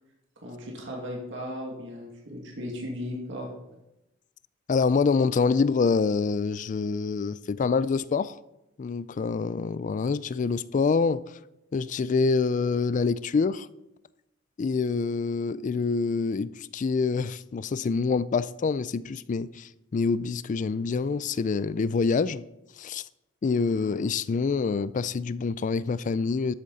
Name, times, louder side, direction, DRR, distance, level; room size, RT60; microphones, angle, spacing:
voice 1, 0.4-3.5, left 1 dB, 70° right, 2.3 m, -36 dB
voice 2, 4.7-8.4 8.8-11.4 11.7-13.7 14.6-22.4 22.8-23.0 23.4-26.5, left 4 dB, 40° left, 0.4 m, -26 dB
13.0 x 8.7 x 4.1 m
head